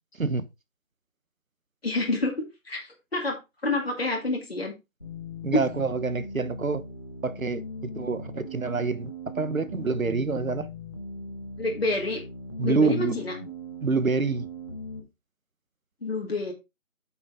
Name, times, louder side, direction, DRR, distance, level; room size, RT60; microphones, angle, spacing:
voice 1, 1.8-4.7 5.5-5.6 11.6-12.2 12.6-13.3 16.0-16.5, left 2 dB, 50° left, 2.1 m, -28 dB
sound 1, 5.0-15.0, left 1 dB, 20° left, 1.2 m, -39 dB
voice 2, 5.4-6.9 7.2-10.7 12.6-13.2 13.8-14.5, right 4 dB, 85° right, 1.1 m, -27 dB
8.6 x 5.3 x 3.7 m
figure-of-eight pair, 170°, 40 cm